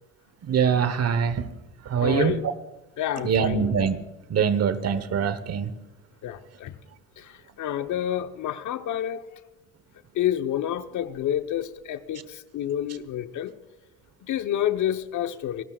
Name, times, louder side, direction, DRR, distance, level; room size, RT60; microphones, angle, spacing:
voice 1, 0.4-1.5 1.8-2.5 3.2-4.0 4.3-5.7, right 7 dB, 45° right, 1.2 m, -23 dB
voice 2, 2.0-2.4 3.0-3.7 6.2-6.8 7.2-9.2 10.1-13.5 14.2-15.6, left 11 dB, 60° left, 1.1 m, -29 dB
28.0 x 13.5 x 2.4 m
supercardioid pair, 70°, 34 cm